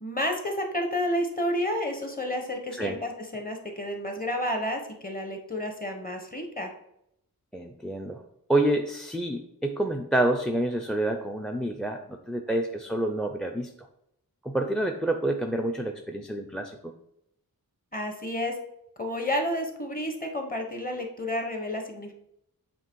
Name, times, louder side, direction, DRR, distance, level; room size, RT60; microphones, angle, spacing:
voice 1, 0.0-6.7 17.9-18.6 19.0-22.1, left 1 dB, 25° left, 4 dB, 1.1 m, -30 dB
voice 2, 7.5-8.2 8.5-13.9 14.4-16.9, right 1 dB, ahead, 5 dB, 0.4 m, -28 dB
7.5 x 3.0 x 4.6 m, 0.77 s
wide cardioid pair, 100°, 36 cm